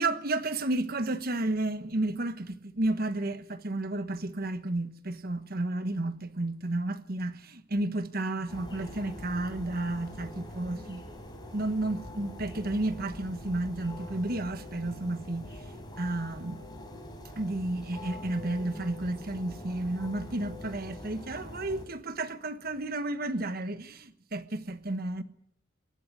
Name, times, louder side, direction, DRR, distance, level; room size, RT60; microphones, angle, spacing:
voice 1, 0.0-11.0 11.5-15.7 16.0-16.6 17.4-25.2, right 2 dB, 50° right, 1.3 m, -32 dB
sound 1, 8.5-21.9, left 1 dB, 20° left, 5.4 m, -44 dB
22.0 x 18.5 x 9.7 m
head